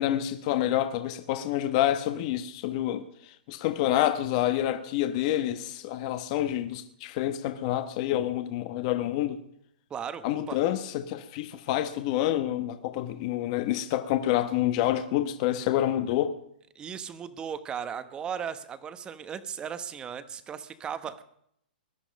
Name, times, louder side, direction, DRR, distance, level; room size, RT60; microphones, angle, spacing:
voice 1, 0.0-3.0 3.5-9.4 10.2-16.4, left 12 dB, 40° left, 1.3 m, -28 dB
voice 2, 9.9-10.6 16.7-21.2, right 7 dB, 15° right, 1.1 m, -36 dB
21.0 x 11.5 x 5.3 m
hypercardioid pair, 145°, 5 cm